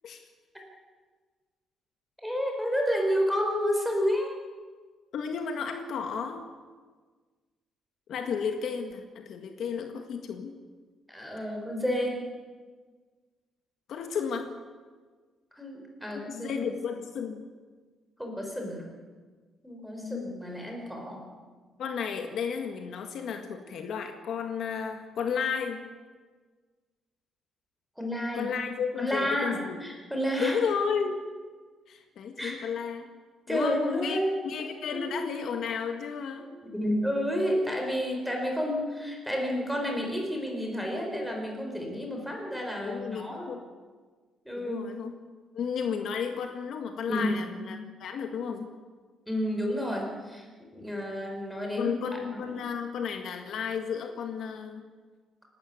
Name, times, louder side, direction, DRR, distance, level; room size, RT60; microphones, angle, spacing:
voice 1, 2.2-4.4 11.1-12.2 15.5-16.5 18.2-18.9 19.6-21.2 28.0-28.5 29.0-30.6 32.4-32.6 33.5-34.5 34.9-35.3 36.7-43.5 44.4-44.9 47.0-47.5 49.3-50.5 50.7-52.5, equal, ahead, 1 dB, 4.7 m, -30 dB
voice 2, 5.1-6.4 8.1-10.6 13.9-14.5 16.3-17.5 20.0-20.3 21.8-25.8 28.3-29.8 30.4-31.3 31.9-33.1 33.5-34.2 34.4-36.5 42.8-43.6 44.6-45.1 45.5-48.7 51.8-54.8, left 6 dB, 60° left, 5 dB, 1.8 m, -33 dB
27.5 x 12.5 x 9.5 m, 1.4 s
cardioid pair, 165°, 0 cm